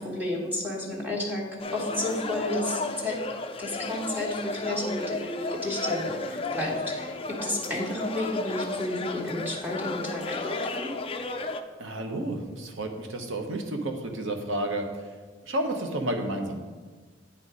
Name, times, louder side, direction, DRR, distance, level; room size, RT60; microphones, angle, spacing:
voice 1, 0.0-1.4 1.7-3.2 3.6-10.9, left 1 dB, 10° right, -3 dB, 1.3 m, -31 dB
sound 1, 1.6-11.6, left 3 dB, 30° left, 0.4 m, -33 dB
voice 2, 11.8-15.1 15.4-16.6, right 1 dB, 75° right, 5 dB, 0.9 m, -31 dB
8.8 x 4.1 x 4.8 m, 1.4 s
head